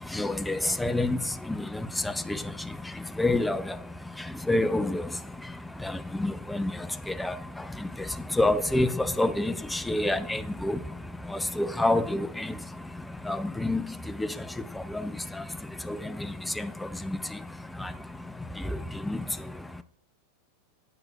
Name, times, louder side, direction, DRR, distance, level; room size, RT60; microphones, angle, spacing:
voice 1, 0.0-19.8, left 2 dB, 5° left, 0.5 m, -30 dB
8.7 x 7.8 x 2.3 m
figure-of-eight pair, 90°, 0 cm